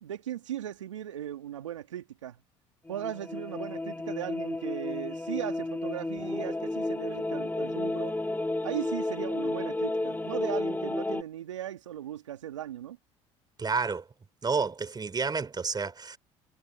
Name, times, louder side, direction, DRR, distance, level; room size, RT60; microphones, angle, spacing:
voice 1, 0.0-2.4 2.9-8.1 8.6-13.0, right 11 dB, 85° right, 2.6 m, -38 dB
sound 1, 2.9-11.2, left 2 dB, 10° left, 2.7 m, -32 dB
voice 2, 13.6-14.0 14.4-16.2, right 4 dB, 25° right, 3.4 m, -30 dB
hypercardioid pair, 60°, 15 cm